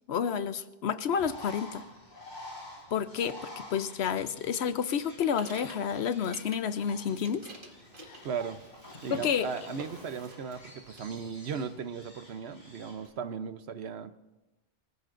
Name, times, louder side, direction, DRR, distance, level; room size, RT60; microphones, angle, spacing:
voice 1, 0.1-1.8 2.9-7.4 8.0-8.2 9.1-9.5, left 7 dB, 85° left, 12 dB, 1.0 m, -30 dB
Bird, 1.1-13.1, left 1 dB, 45° left, 3.9 m, -49 dB
sound 1, 4.2-6.8 7.1-8.8 9.0-9.4 9.8-10.7 11.0-11.7, right 1 dB, 55° right, 2.1 m, -48 dB
voice 2, 8.2-8.6 9.0-14.1, right 6 dB, 85° right, 11 dB, 1.1 m, -37 dB
25.5 x 15.0 x 2.6 m, 1.1 s
omnidirectional pair, 1.1 m